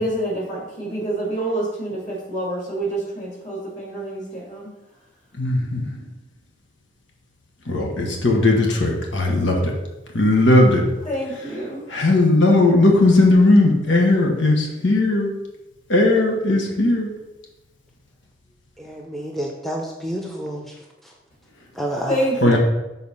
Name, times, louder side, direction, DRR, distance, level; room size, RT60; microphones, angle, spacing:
voice 1, 0.0-4.7 11.1-11.9 22.1-22.6, right 1 dB, 40° left, -3 dB, 2.5 m, -27 dB
voice 2, 5.4-6.0 7.7-9.7 10.1-10.8 11.9-15.3 15.9-17.1 22.4-22.6, left 2 dB, 85° left, 0 dB, 1.3 m, -17 dB
voice 3, 18.8-20.7 21.7-22.2 22.5-22.6, right 1 dB, ahead, -1 dB, 0.7 m, -29 dB
6.9 x 4.1 x 5.5 m, 1.1 s
head